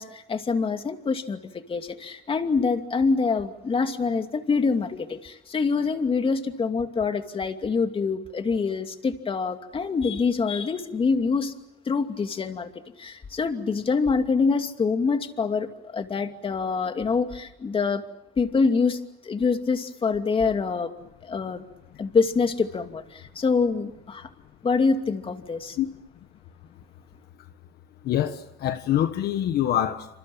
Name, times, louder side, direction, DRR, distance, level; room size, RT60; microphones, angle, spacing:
voice 1, 0.0-11.5 11.9-12.7 13.0-18.0 18.4-20.9 21.2-21.6 22.0-24.3 24.6-25.8, left 4 dB, 30° left, 2.6 m, -25 dB
voice 2, 28.0-30.1, left 11 dB, 70° left, 1.5 m, -25 dB
28.5 x 26.5 x 7.3 m
cardioid pair, 110°, 17 cm